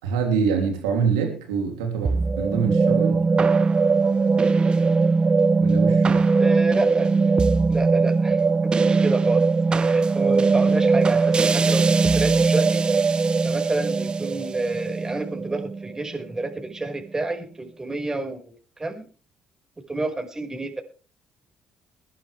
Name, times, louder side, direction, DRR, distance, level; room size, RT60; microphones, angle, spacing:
voice 1, 0.0-3.3 5.6-6.2, right 6 dB, 90° right, 3 dB, 3.0 m, -25 dB
sound 1, 2.0-16.5, right 4 dB, 35° right, 0.8 m, -20 dB
voice 2, 6.4-7.1 7.7-19.1 19.8-20.8, right 2 dB, 20° right, 4 dB, 5.6 m, -29 dB
22.0 x 11.5 x 3.5 m, 0.38 s
hypercardioid pair, 55°, 3 cm